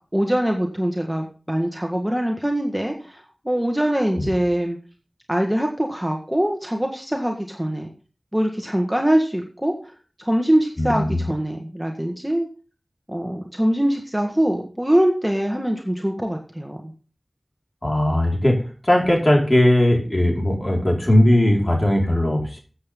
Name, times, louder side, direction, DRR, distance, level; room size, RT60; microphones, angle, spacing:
voice 1, 0.1-4.8 5.3-7.9 8.3-9.7 10.2-12.5 13.1-16.8, right 1 dB, 10° right, 2 dB, 1.7 m, -23 dB
voice 2, 10.8-11.2 17.8-18.6 18.8-22.6, left 1 dB, 30° left, -1 dB, 4.9 m, -18 dB
14.0 x 8.0 x 3.8 m, 0.37 s
wide cardioid pair, 45°, 0 cm